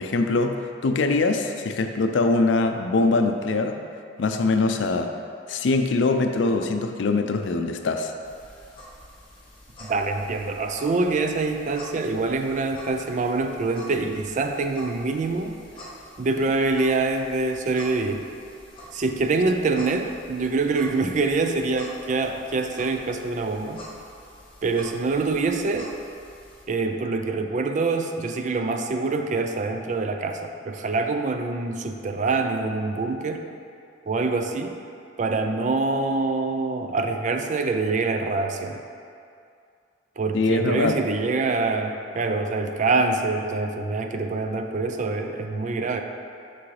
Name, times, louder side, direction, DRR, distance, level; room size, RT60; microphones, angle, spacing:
voice 1, 0.0-3.8 4.2-5.1 5.5-8.1 40.3-41.0, left 3 dB, 80° left, 6 dB, 0.4 m, -23 dB
sound 1, 8.2-26.6, equal, 30° left, 1.3 m, -46 dB
voice 2, 9.8-15.6 16.2-18.3 18.9-23.8 24.6-26.0 26.7-33.5 34.1-34.8 35.2-38.8 40.2-46.0, right 3 dB, 40° right, 5 dB, 0.4 m, -25 dB
6.0 x 5.9 x 3.2 m, 2.4 s
head